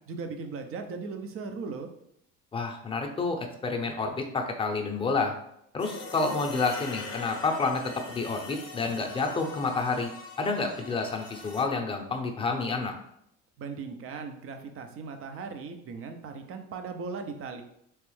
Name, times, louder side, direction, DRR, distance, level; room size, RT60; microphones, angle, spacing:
voice 1, 0.1-1.9 13.6-17.6, right 4 dB, 45° right, 6 dB, 0.6 m, -38 dB
voice 2, 2.5-5.3 5.7-10.1 10.4-12.9, left 3 dB, 15° left, 3 dB, 0.7 m, -29 dB
sound 1, 5.8-11.6, left 3 dB, 45° left, 0.9 m, -42 dB
3.3 x 3.2 x 3.2 m, 0.74 s
supercardioid pair, 85°, 31 cm